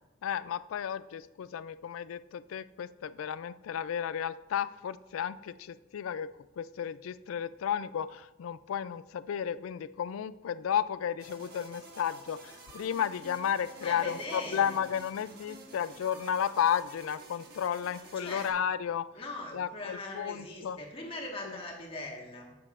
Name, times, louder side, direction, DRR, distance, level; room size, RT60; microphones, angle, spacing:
voice 1, 0.2-19.1 19.5-20.8 21.4-21.6, left 8 dB, 85° left, 16 dB, 0.3 m, -33 dB
sound 1, 11.2-18.5, right 1 dB, 50° right, 1.4 m, -51 dB
voice 2, 13.8-14.8 18.1-18.5 19.1-22.6, left 2 dB, 25° left, -1 dB, 1.4 m, -41 dB
11.5 x 7.7 x 2.5 m, 1.0 s
head